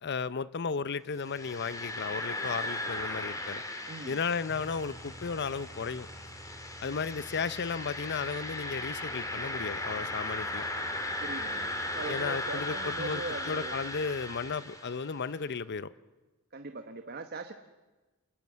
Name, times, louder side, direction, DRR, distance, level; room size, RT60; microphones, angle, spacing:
voice 1, 0.0-3.6 4.1-6.1 6.8-10.7 12.1-15.9, left 5 dB, 55° left, 17 dB, 0.7 m, -34 dB
sound 1, 1.2-15.2, left 1 dB, 15° left, 3.0 m, -37 dB
voice 2, 3.9-4.2 11.2-13.7 16.5-17.5, right 3 dB, 50° right, 7 dB, 1.2 m, -40 dB
sound 2, 4.5-14.5, right 1 dB, 35° left, 6.3 m, -53 dB
28.0 x 19.0 x 7.4 m, 1.2 s
head